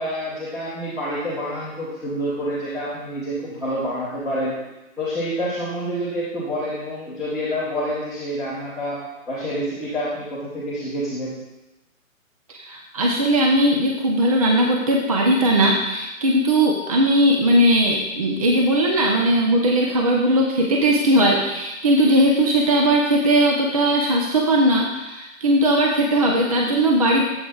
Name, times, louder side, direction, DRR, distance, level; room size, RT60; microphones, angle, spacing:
voice 1, 0.0-4.5 5.0-9.0 9.3-11.4, equal, ahead, -14 dB, 1.1 m, -27 dB
voice 2, 12.6-27.2, right 1 dB, 25° right, 0 dB, 0.6 m, -18 dB
13.0 x 7.9 x 2.3 m, 1.0 s
hypercardioid pair, 155°, 41 cm